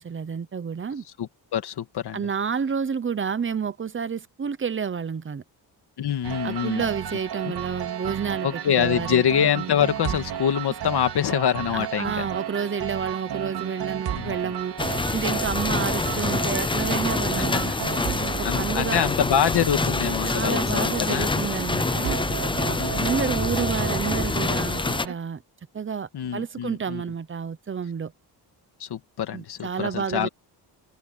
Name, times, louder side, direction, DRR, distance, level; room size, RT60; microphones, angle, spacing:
voice 1, 0.0-1.0 2.1-5.4 6.4-9.2 11.7-14.7 15.1-17.8 18.1-19.0 20.2-22.2 22.6-25.4 25.7-28.1 29.3-30.3, right 6 dB, 30° right, 0.9 m, -30 dB
voice 2, 1.2-2.3 6.0-6.9 7.4-7.5 8.4-12.3 14.1-14.5 17.4-17.6 18.4-21.3 22.8-23.2 26.1-27.0 28.8-30.3, left 9 dB, 65° left, 2.2 m, -25 dB
sound 1, 6.2-25.1, right 10 dB, 60° right, 2.8 m, -33 dB
sound 2, 14.8-25.1, left 3 dB, 10° left, 0.5 m, -26 dB
wide cardioid pair, 150°, 42 cm